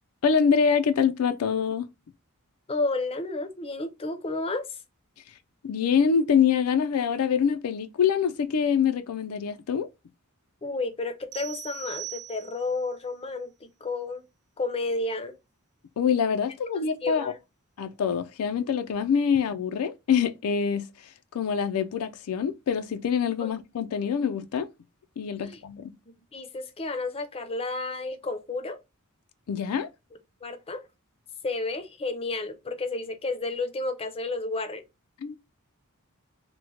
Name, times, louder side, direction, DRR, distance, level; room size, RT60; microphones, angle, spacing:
voice 1, 0.2-1.9 5.6-9.9 16.0-17.3 17.8-24.7 25.2-26.0 29.5-29.9 35.2-35.4, left 7 dB, 85° left, 0.4 m, -25 dB
voice 2, 2.7-4.8 10.6-14.2 14.6-15.3 17.0-17.4 23.4-23.5 25.4-25.6 26.3-28.8 30.4-30.8 31.4-34.8, left 3 dB, 25° left, 0.5 m, -31 dB
sound 1, 11.3-12.8, right 13 dB, 85° right, 0.4 m, -40 dB
3.0 x 2.1 x 3.7 m
head